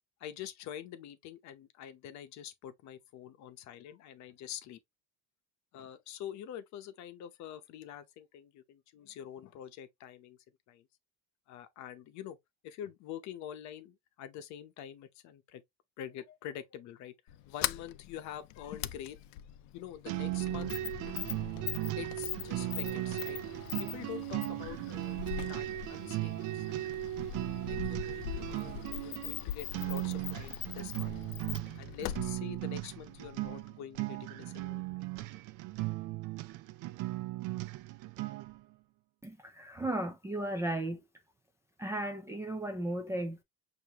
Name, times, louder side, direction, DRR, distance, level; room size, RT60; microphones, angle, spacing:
voice 1, 0.2-4.8 5.7-10.4 10.7-10.8 11.5-12.4 12.6-15.6 16.0-17.1 17.5-19.2 19.7-20.7 21.3-21.4 22.0-25.2 25.5-27.1 27.7-31.2 31.8-34.8, left 10 dB, 55° left, 0.8 m, -46 dB
Sliding door, 17.3-33.7, left 13 dB, 85° left, 0.5 m, -42 dB
sound 1, 20.1-38.6, right 17 dB, 65° right, 0.5 m, -37 dB
voice 2, 39.2-41.0 41.8-43.4, right 1 dB, 10° right, 0.4 m, -35 dB
6.5 x 2.7 x 2.9 m
cardioid pair, 180°, 34 cm